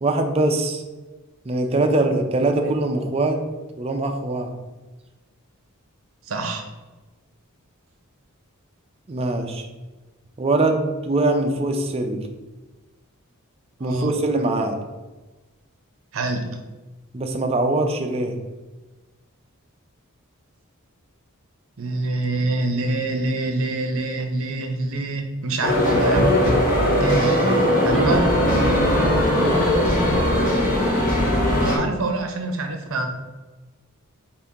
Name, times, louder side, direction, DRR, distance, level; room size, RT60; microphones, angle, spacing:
voice 1, 0.0-0.8 1.5-3.4 3.8-4.5 9.1-9.7 10.4-12.3 13.8-14.8 17.1-18.3 29.4-29.7, right 2 dB, 25° right, 4 dB, 0.4 m, -22 dB
voice 2, 6.3-6.7 13.8-14.1 16.1-16.5 21.8-26.3 26.8-27.4 27.8-28.3 31.6-33.2, right 2 dB, 65° right, 5 dB, 0.6 m, -26 dB
sound 1, 25.6-31.8, equal, 40° left, 0.9 m, -19 dB
4.3 x 2.9 x 3.6 m, 1.2 s
head